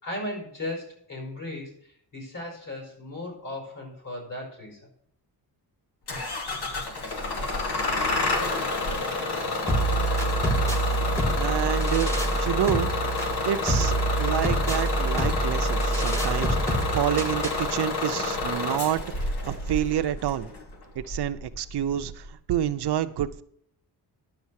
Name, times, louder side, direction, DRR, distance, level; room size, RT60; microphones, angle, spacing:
voice 1, 0.0-4.9, left 1 dB, 50° left, 1 dB, 5.4 m, -36 dB
Bus / Engine starting, 6.1-22.3, left 3 dB, 75° left, 2.6 m, -29 dB
sound 1, 9.7-17.7, right 2 dB, 5° left, 1.6 m, -26 dB
voice 2, 11.3-12.9 13.5-20.5 20.9-23.4, right 11 dB, 75° right, 10 dB, 0.8 m, -28 dB
10.5 x 7.0 x 6.5 m, 0.66 s
wide cardioid pair, 130°, 40 cm